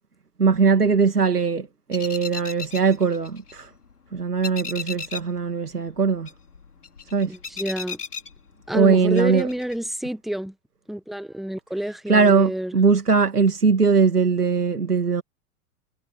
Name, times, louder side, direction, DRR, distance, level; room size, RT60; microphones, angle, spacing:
voice 1, 0.4-3.7 4.1-6.3 7.1-7.4 8.7-9.5 12.1-15.2, right 5 dB, 90° right, 2.7 m, -20 dB
sound 1, 1.9-3.9 4.2-5.4 5.7-8.8 9.1-9.8, left 5 dB, 80° left, 5.5 m, -36 dB
voice 2, 7.3-8.0 8.7-10.5 10.9-12.7, right 1 dB, ahead, 1.4 m, -28 dB
figure-of-eight pair, 95°, 45 cm